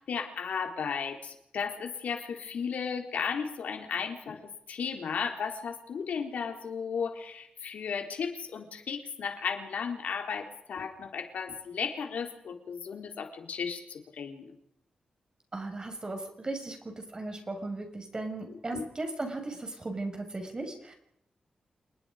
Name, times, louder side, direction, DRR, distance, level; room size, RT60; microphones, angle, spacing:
voice 1, 0.1-4.4 4.7-14.5 18.5-18.8, left 6 dB, 90° left, 4 dB, 4.1 m, -35 dB
voice 2, 15.5-20.9, right 2 dB, 30° right, 5 dB, 6.2 m, -37 dB
28.0 x 20.5 x 5.2 m, 0.75 s
cardioid pair, 85°, 2 cm